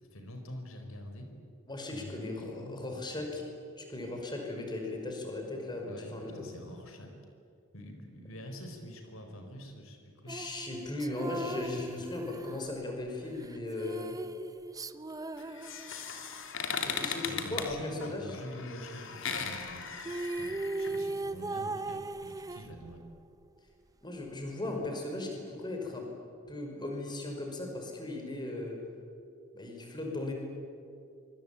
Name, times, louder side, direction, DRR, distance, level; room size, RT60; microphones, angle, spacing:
voice 1, 0.1-1.3 1.9-2.8 5.9-7.1 7.7-10.4 11.6-12.1 17.2-19.8 20.4-23.0, equal, 85° left, 5 dB, 4.8 m, -46 dB
voice 2, 1.7-3.5 3.8-6.5 10.2-14.2 16.8-18.4 24.0-26.1 26.5-28.8 29.5-30.3, left 2 dB, 20° left, 2 dB, 5.5 m, -37 dB
sound 1, 10.3-16.4 19.7-19.8 20.0-23.2, right 2 dB, 15° right, 0.7 m, -39 dB
sound 2, 15.4-21.0, left 6 dB, 65° left, 3.1 m, -38 dB
26.0 x 25.5 x 8.8 m, 2.5 s
head